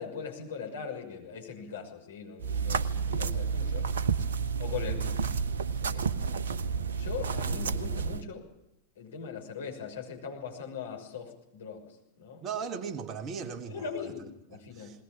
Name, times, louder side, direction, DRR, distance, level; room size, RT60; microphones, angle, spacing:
voice 1, 0.0-3.9 4.6-5.4 5.8-6.0 6.9-8.5 9.0-12.4 13.7-14.9, left 6 dB, 65° left, 2 dB, 6.2 m, -40 dB
sound 1, 2.4-8.2, right 6 dB, 65° right, 0.9 m, -30 dB
voice 2, 12.4-14.1 14.5-15.0, right 6 dB, 30° right, 7 dB, 1.8 m, -38 dB
21.0 x 20.5 x 8.9 m, 0.84 s
figure-of-eight pair, 90°, 0 cm